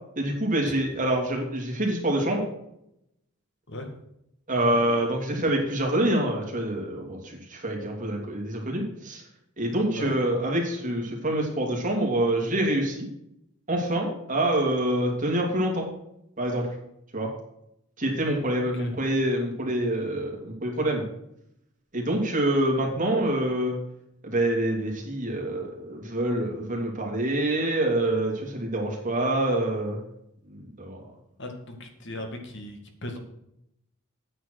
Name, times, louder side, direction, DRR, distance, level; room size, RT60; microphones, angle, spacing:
voice 1, 0.2-2.5 4.5-9.2 9.6-13.1 13.7-15.9 16.4-16.7 17.1-17.3 18.0-21.0 21.9-23.7 24.2-30.0 30.5-31.0, right 1 dB, 35° right, 0 dB, 3.0 m, -26 dB
voice 2, 9.8-10.2 18.7-18.9 31.4-33.2, left 1 dB, 55° left, 4 dB, 2.2 m, -38 dB
9.1 x 7.8 x 6.4 m, 0.79 s
head